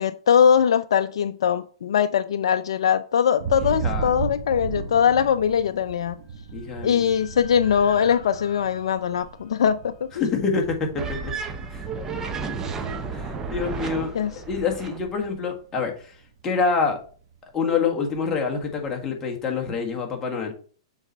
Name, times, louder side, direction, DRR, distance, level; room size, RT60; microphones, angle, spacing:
voice 1, 0.0-6.2 6.8-10.3 14.1-14.3, left 8 dB, 75° left, 0.4 m, -21 dB
Thunder, 3.4-16.3 16.6-17.2 17.5-19.0, right 6 dB, 50° right, 1.5 m, -37 dB
voice 2, 3.6-4.1 6.5-7.1 10.2-11.3 11.7-11.8 13.1-14.1 14.5-16.1 16.4-17.0 17.5-20.5, left 5 dB, 20° left, 1.6 m, -26 dB
sound 1, 6.2-10.5, left 5 dB, 45° left, 2.8 m, -46 dB
sound 2, 11.0-15.0, right 4 dB, 20° right, 0.9 m, -32 dB
7.1 x 4.1 x 4.2 m
hypercardioid pair, 130°, 3 cm